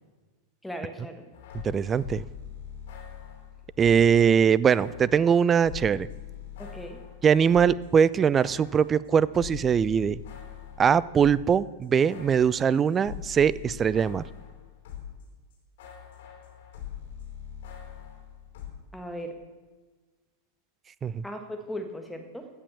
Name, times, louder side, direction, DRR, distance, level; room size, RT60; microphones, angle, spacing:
voice 1, 0.6-1.2 6.6-7.0 18.9-19.4 21.2-22.5, equal, 5° left, 6 dB, 1.5 m, -37 dB
sound 1, 1.3-4.2 4.7-7.9 8.1-15.2 15.5-18.7, left 9 dB, 55° left, 3.0 m, -42 dB
voice 2, 1.6-2.2 3.8-6.1 7.2-10.2 10.8-14.2 21.0-21.2, right 7 dB, 20° right, 21 dB, 0.3 m, -22 dB
14.5 x 5.9 x 7.0 m, 1.3 s
figure-of-eight pair, 90°, 0 cm